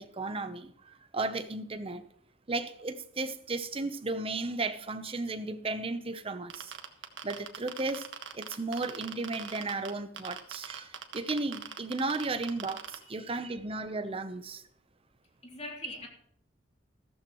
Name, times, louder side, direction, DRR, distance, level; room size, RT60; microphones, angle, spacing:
voice 1, 0.0-2.0 2.5-6.7 7.2-8.1 8.3-14.6, right 3 dB, 30° right, 0.8 m, -34 dB
sound 1, 6.5-9.9 10.2-12.9, right 7 dB, 80° right, 1.4 m, -40 dB
voice 2, 13.0-13.5 15.4-16.1, left 2 dB, 35° left, 3.1 m, -44 dB
14.5 x 14.0 x 3.1 m
head